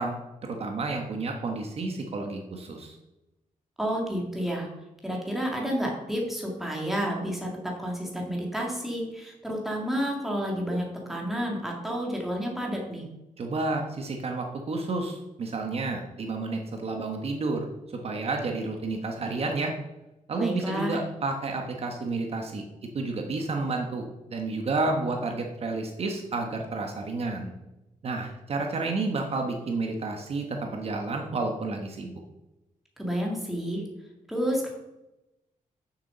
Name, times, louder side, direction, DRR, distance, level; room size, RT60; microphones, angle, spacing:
voice 1, 0.0-3.0 13.4-19.7 20.3-22.6 22.9-27.5 28.0-32.2, right 3 dB, 45° right, 3 dB, 1.2 m, -30 dB
voice 2, 3.8-4.7 5.0-13.1 20.4-21.0 33.0-33.8 34.3-34.7, equal, ahead, -1 dB, 2.1 m, -30 dB
7.3 x 6.8 x 6.7 m, 0.96 s
wide cardioid pair, 155°, 14 cm